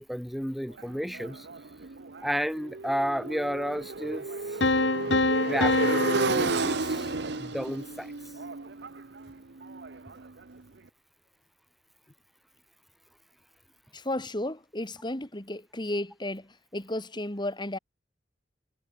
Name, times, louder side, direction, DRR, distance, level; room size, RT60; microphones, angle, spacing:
voice 1, 0.0-1.5 2.2-4.6 5.0-5.2 5.4-8.1, equal, ahead, 2.6 m, -32 dB
Motorcycle, 0.8-10.6, right 3 dB, 60° right, 0.9 m, -33 dB
sound 1, 4.6-7.5, left 2 dB, 70° left, 2.5 m, -26 dB
voice 2, 13.9-17.8, left 1 dB, 25° left, 2.7 m, -33 dB
head